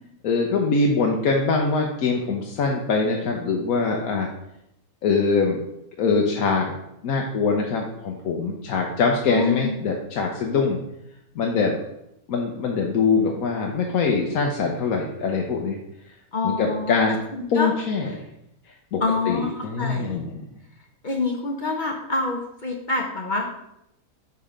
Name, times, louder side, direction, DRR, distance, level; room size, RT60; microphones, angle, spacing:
voice 1, 0.2-4.3 5.0-5.6 6.0-6.8 7.0-10.8 11.3-11.8 12.3-15.8 16.4-17.2 17.5-18.1 18.7-20.4, left 4 dB, 70° left, 1 dB, 1.2 m, -23 dB
voice 2, 9.3-9.8 16.3-17.0 17.3-17.7 18.1-18.2 19.0-20.2 21.0-23.6, left 3 dB, 50° left, 1 dB, 0.6 m, -26 dB
5.8 x 4.1 x 4.9 m, 0.82 s
omnidirectional pair, 1.6 m